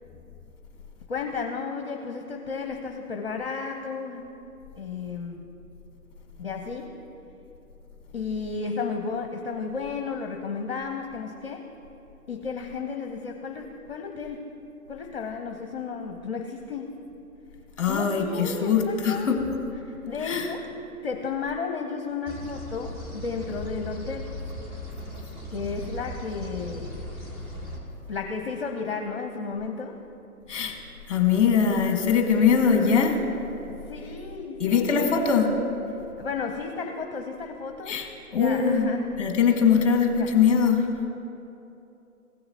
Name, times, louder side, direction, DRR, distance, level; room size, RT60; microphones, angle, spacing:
voice 1, 1.1-4.2 4.8-5.5 6.4-6.9 8.1-11.6 12.3-14.5 14.9-16.9 17.9-19.3 19.8-20.7 21.0-24.3 25.5-26.9 28.1-30.0 33.9-35.1 36.2-38.0 38.4-39.1 40.2-40.3, left 5 dB, 40° left, 3 dB, 0.8 m, -33 dB
voice 2, 17.8-19.4 20.2-20.5 30.5-30.8 31.1-33.1 34.6-35.5 37.9-38.1 38.3-38.9 39.2-40.8, left 6 dB, 20° left, 2 dB, 1.5 m, -21 dB
sound 1, 22.3-27.8, left 1 dB, 20° right, 1.7 m, -38 dB
16.5 x 6.7 x 2.9 m, 2.9 s
figure-of-eight pair, 140°, 45 cm